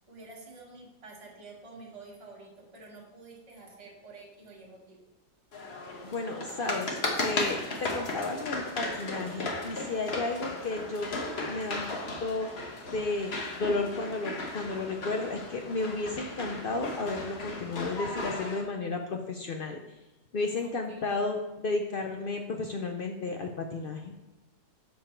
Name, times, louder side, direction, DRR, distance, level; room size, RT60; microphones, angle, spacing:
voice 1, 0.1-5.0 20.3-21.2, right 3 dB, 20° right, -4 dB, 1.4 m, -49 dB
sound 1, 5.5-18.6, left 2 dB, 45° left, 1.2 m, -36 dB
voice 2, 6.0-6.9 7.2-7.6 7.9-11.1 11.4-11.9 12.2-12.5 12.9-13.3 13.6-19.8 20.3-24.1, left 3 dB, 75° left, 3 dB, 0.5 m, -33 dB
7.0 x 5.2 x 4.4 m, 1.0 s
omnidirectional pair, 1.7 m